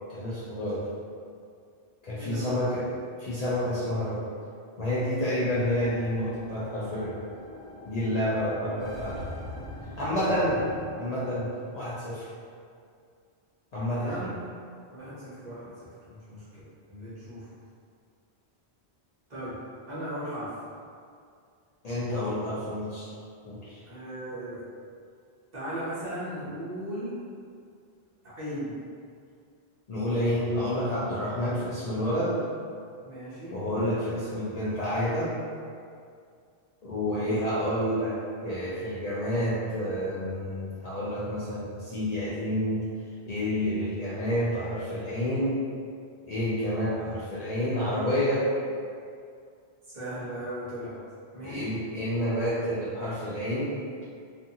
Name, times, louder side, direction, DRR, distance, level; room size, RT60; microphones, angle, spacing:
voice 1, 0.1-0.9 2.0-2.9 3.2-4.3 4.8-7.2 7.9-9.2 10.0-10.6 11.0-11.5 11.7-12.2 13.7-14.3 21.8-23.1 23.4-23.8 29.9-32.4 33.5-35.3 36.8-38.2 38.4-42.8 43.3-45.6 46.3-48.5 51.4-53.8, equal, 50° left, -10 dB, 0.5 m, -29 dB
voice 2, 2.2-2.6 14.0-14.3 14.9-16.6 16.9-17.5 19.3-19.6 19.9-20.5 23.8-24.6 25.5-27.2 28.2-28.8 33.0-33.6 37.0-37.4 49.9-50.9 51.3-51.7, right 1 dB, 45° right, -11 dB, 0.9 m, -37 dB
sound 1, 5.6-10.9, left 2 dB, 80° left, 1.1 m, -42 dB
2.5 x 2.4 x 2.7 m, 2.3 s
omnidirectional pair, 1.1 m